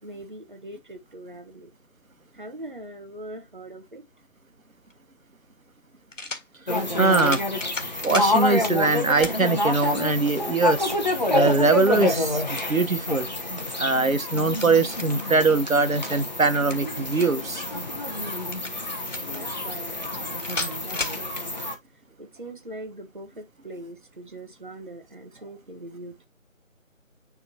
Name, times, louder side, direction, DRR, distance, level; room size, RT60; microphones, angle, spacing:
voice 1, 0.0-1.7 2.3-4.0 19.3-20.1 20.8-21.7 22.2-26.2, right 1 dB, 35° right, 1.2 m, -41 dB
sound 1, 4.9-5.0 6.1-6.5 7.1-8.3 9.2-9.4 10.0-10.1 11.9-12.7 14.1-15.3 16.4-17.5 18.5-19.4 20.4-21.2, left 2 dB, 65° left, 1.8 m, -35 dB
sound 2, 6.7-21.7, left 2 dB, 30° left, 1.0 m, -28 dB
voice 2, 6.7-7.4 8.0-10.9 11.3-13.3 13.8-17.6, right 3 dB, 75° right, 1.2 m, -22 dB
9.7 x 3.6 x 2.8 m
figure-of-eight pair, 165°, 41 cm